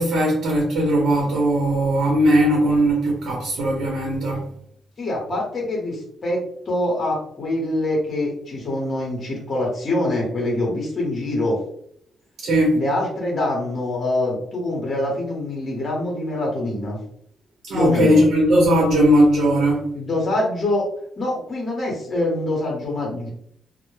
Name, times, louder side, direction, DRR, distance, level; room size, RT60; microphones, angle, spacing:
voice 1, 0.0-4.5 12.4-12.8 17.7-19.9, equal, 75° right, -3 dB, 0.8 m, -18 dB
voice 2, 5.0-11.6 12.7-17.0 17.7-18.2 19.9-20.9 21.2-23.3, left 1 dB, 35° left, -2 dB, 0.8 m, -24 dB
2.1 x 2.1 x 3.0 m, 0.66 s
cardioid pair, 135°, 0 cm